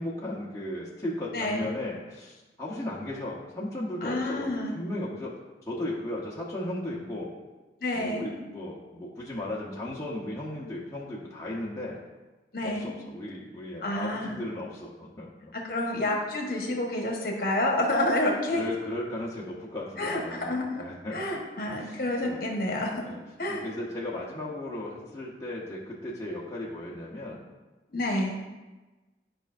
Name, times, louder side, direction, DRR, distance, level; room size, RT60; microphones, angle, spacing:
voice 1, 0.0-5.4 5.7-7.3 7.9-12.0 12.6-15.3 16.1-16.2 18.5-21.2 21.7-22.4 22.7-23.2 23.5-27.4, left 1 dB, 20° left, -6 dB, 0.9 m, -36 dB
voice 2, 4.0-4.8 7.8-8.3 12.5-12.9 13.8-14.4 15.5-18.6 20.0-20.6 21.1-22.9 23.4-23.7 27.9-28.3, left 1 dB, 55° left, -1 dB, 1.2 m, -29 dB
11.0 x 5.2 x 2.6 m, 1.2 s
head